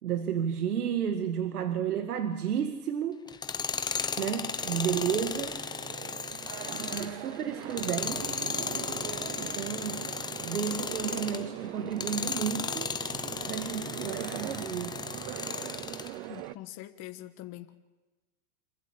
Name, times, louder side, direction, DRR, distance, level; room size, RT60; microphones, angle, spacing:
voice 1, 0.0-3.2 4.2-5.6 6.7-8.5 9.4-10.1 10.4-12.9 13.4-15.0, right 8 dB, 85° right, 7 dB, 2.1 m, -32 dB
Tools, 3.3-11.5 11.9-16.1, left 5 dB, 10° left, 0.9 m, -35 dB
sound 1, 4.6-16.6, right 17 dB, 45° right, 0.8 m, -42 dB
voice 2, 16.3-17.7, left 15 dB, 35° left, 7 dB, 1.5 m, -44 dB
26.5 x 15.0 x 8.6 m, 1.2 s
hypercardioid pair, 135°, 44 cm